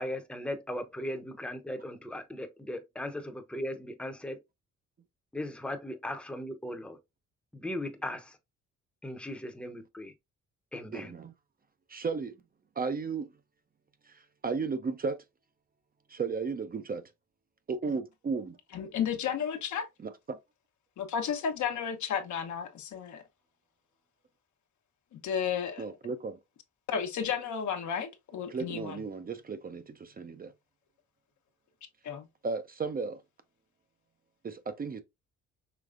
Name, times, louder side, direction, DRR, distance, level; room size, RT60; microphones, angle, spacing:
voice 1, 0.0-4.4 5.3-7.0 7.5-8.2 9.0-10.1 10.7-11.1, left 1 dB, 5° left, 0.8 m, -37 dB
voice 2, 10.9-11.3 11.9-12.4 12.8-13.3 14.1-15.2 16.1-17.0 17.7-18.6 20.3-20.4 25.8-26.4 28.5-30.5 32.4-33.2 34.4-35.0, right 4 dB, 30° right, 0.5 m, -34 dB
voice 3, 18.7-19.9 21.0-23.2 25.1-26.0 26.9-29.0 32.0-32.3, left 7 dB, 70° left, 1.0 m, -33 dB
5.0 x 3.2 x 2.5 m
cardioid pair, 90°, 30 cm